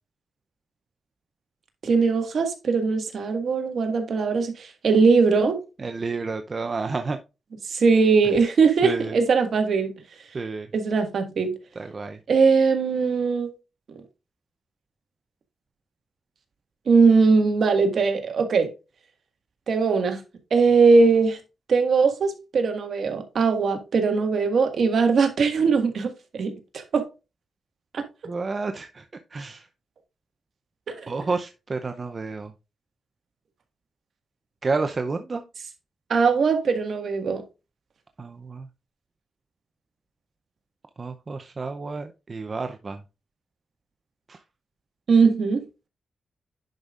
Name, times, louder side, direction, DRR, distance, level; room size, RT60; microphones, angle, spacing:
voice 1, 1.8-5.6 7.7-9.9 10.7-11.5 12.3-13.5 16.9-18.7 19.7-20.2 20.5-21.4 21.7-27.0 27.9-28.0 30.9-31.3 36.1-37.4 45.1-45.6, right 4 dB, 65° right, 1.7 m, -20 dB
voice 2, 5.8-7.2 8.8-9.1 10.3-10.7 11.8-12.2 28.2-29.0 29.3-29.6 31.1-32.5 34.6-35.4 38.2-38.7 41.0-43.0 44.3-44.4, right 4 dB, 40° right, 0.6 m, -30 dB
10.5 x 5.2 x 2.4 m
cardioid pair, 90°, 0 cm